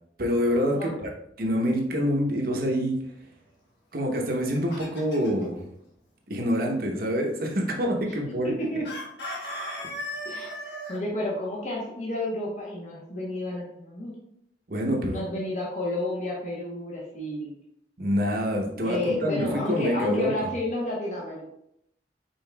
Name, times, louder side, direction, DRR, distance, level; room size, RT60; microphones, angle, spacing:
voice 1, 0.2-1.1 1.4-2.9 3.9-5.6 6.3-8.5 9.8-9.9 14.7-15.2 18.0-20.5, equal, 55° right, 1 dB, 0.9 m, -26 dB
voice 2, 0.7-1.1 8.0-8.1 8.4-8.9 10.2-10.5 10.9-14.1 15.1-17.5 18.8-21.4, left 1 dB, 45° left, -4 dB, 0.9 m, -31 dB
Chicken rooster, 4.2-5.4 8.8-11.0, equal, 70° left, 1.2 m, -36 dB
5.6 x 3.8 x 2.3 m, 0.75 s
head